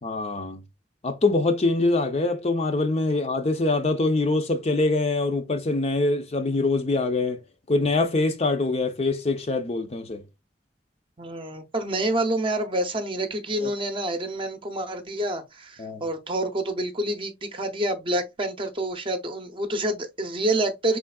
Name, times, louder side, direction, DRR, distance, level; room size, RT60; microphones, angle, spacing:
voice 1, 0.0-0.6 1.0-7.4 7.7-10.2 13.6-13.7 15.8-16.0, left 2 dB, 35° left, 0.6 m, -24 dB
voice 2, 11.2-21.0, right 1 dB, 30° right, 0.7 m, -28 dB
5.0 x 3.6 x 2.2 m
head